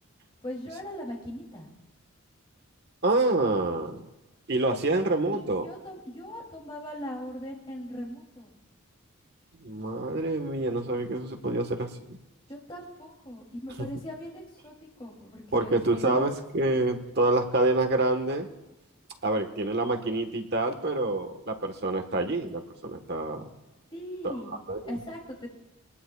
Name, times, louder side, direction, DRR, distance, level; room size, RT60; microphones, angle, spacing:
voice 1, 0.4-1.7 5.6-8.6 12.5-15.7 16.0-16.3 23.9-24.5 24.8-25.5, equal, 25° left, -1 dB, 2.7 m, -39 dB
voice 2, 3.0-4.0 4.5-5.7 9.6-12.2 13.8-13.9 15.5-18.5 19.2-23.5 24.7-24.8, right 2 dB, 50° right, 5 dB, 1.3 m, -27 dB
22.5 x 20.0 x 2.3 m, 1.0 s
head